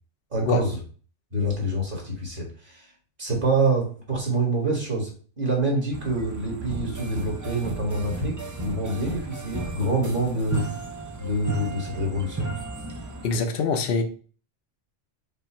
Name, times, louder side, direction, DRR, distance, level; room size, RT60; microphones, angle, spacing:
voice 1, 0.3-0.8 1.3-2.9 3.2-10.6 11.2-12.5, right 2 dB, 45° right, -2 dB, 1.8 m, -26 dB
sound 1, 5.9-13.4, right 3 dB, 25° right, 0.4 m, -34 dB
voice 2, 13.2-14.0, left 4 dB, 60° left, 6 dB, 0.8 m, -24 dB
5.4 x 2.3 x 4.3 m, 0.40 s
omnidirectional pair, 1.2 m